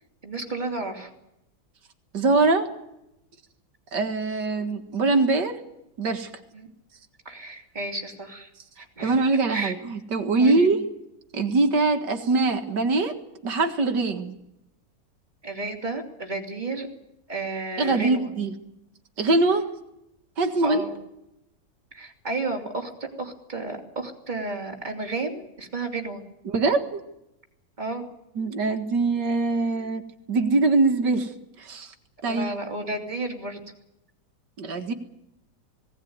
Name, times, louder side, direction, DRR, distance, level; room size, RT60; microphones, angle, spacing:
voice 1, 0.2-1.1 6.5-6.7 7.2-8.5 8.8-9.2 9.5-9.7 10.4-10.7 15.4-16.9 17.3-18.3 20.6-21.0 21.9-22.9 23.2-26.2 27.8-28.0 32.2-33.6, right 2 dB, 25° right, 2 dB, 3.3 m, -32 dB
voice 2, 2.1-2.7 3.9-5.6 6.0-6.3 9.0-10.8 11.3-13.1 13.4-14.4 17.8-18.6 19.2-19.7 20.4-20.8 26.5-27.0 28.4-30.0 30.3-31.3 31.6-31.9 32.2-32.5 34.6-34.9, right 3 dB, 70° right, 7 dB, 2.4 m, -23 dB
19.0 x 18.5 x 9.5 m, 0.87 s
omnidirectional pair, 1.9 m